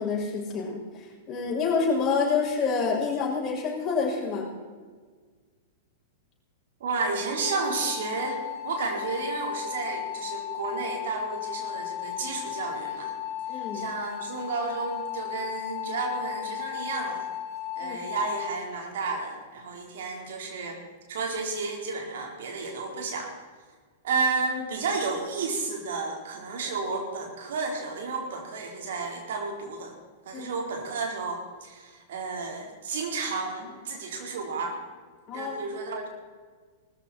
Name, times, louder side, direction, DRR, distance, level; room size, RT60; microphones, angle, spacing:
voice 1, 0.0-4.5 13.5-13.9 17.8-18.0 30.3-30.5 35.3-35.6, left 5 dB, 25° left, -3 dB, 6.2 m, -28 dB
voice 2, 6.8-13.1 13.7-17.3 17.8-20.8 21.1-23.3 24.0-29.9 30.3-34.8 35.3-36.1, right 4 dB, 60° right, 1 dB, 4.0 m, -32 dB
sound 1, 7.3-18.5, left 11 dB, 45° left, 4.8 m, -35 dB
19.5 x 14.0 x 4.4 m, 1.5 s
figure-of-eight pair, 100°, 0 cm